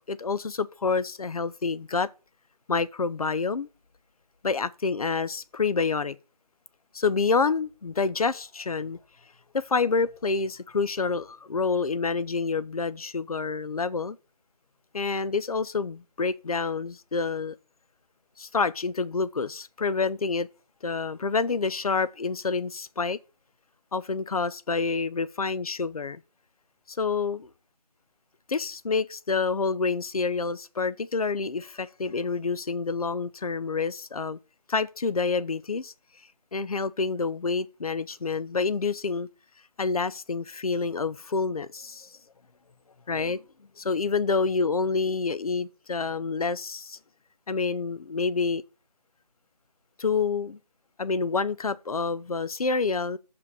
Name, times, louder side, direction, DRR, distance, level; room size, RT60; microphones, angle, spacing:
voice 1, 0.1-2.1 2.7-3.7 4.4-6.2 6.9-9.0 9.5-14.2 14.9-17.5 18.4-20.5 20.8-23.2 23.9-26.2 26.9-27.5 28.5-34.4 34.7-35.9 36.5-39.3 39.8-42.1 43.1-43.4 43.8-47.0 47.5-48.6 50.0-50.6 51.0-53.2, left 4 dB, 60° left, 0.6 m, -28 dB
6.9 x 5.5 x 6.1 m
figure-of-eight pair, 170°, 21 cm